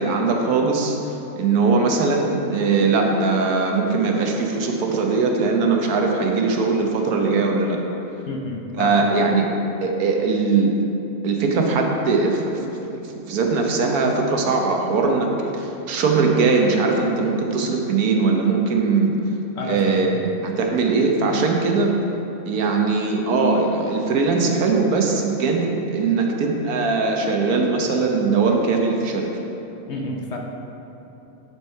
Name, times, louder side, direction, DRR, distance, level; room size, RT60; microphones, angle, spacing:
voice 1, 0.0-7.8 8.8-9.5 9.8-10.7 11.2-19.2 19.6-21.9 22.4-29.3, right 4 dB, 85° right, 2 dB, 1.4 m, -20 dB
voice 2, 8.3-9.0 19.6-20.1 29.9-30.4, left 2 dB, 60° left, 1 dB, 0.9 m, -30 dB
10.5 x 4.6 x 4.5 m, 3.0 s
omnidirectional pair, 1.5 m